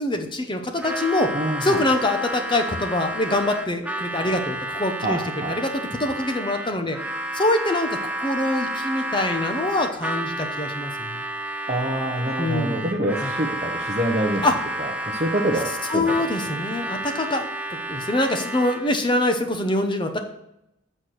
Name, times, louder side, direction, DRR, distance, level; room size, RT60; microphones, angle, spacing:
voice 1, 0.0-1.3 1.6-5.2 5.5-7.0 7.3-11.2 12.4-12.9 13.2-13.3 14.4-14.6 15.9-17.5 17.9-20.2, left 1 dB, 20° left, 6 dB, 0.8 m, -24 dB
Harmonica, 0.8-19.0, right 1 dB, 5° right, 0.4 m, -31 dB
voice 2, 1.3-1.8 5.0-5.6 11.7-14.4 14.8-16.0, right 1 dB, 35° right, -2 dB, 0.8 m, -26 dB
8.4 x 4.4 x 6.3 m, 0.84 s
head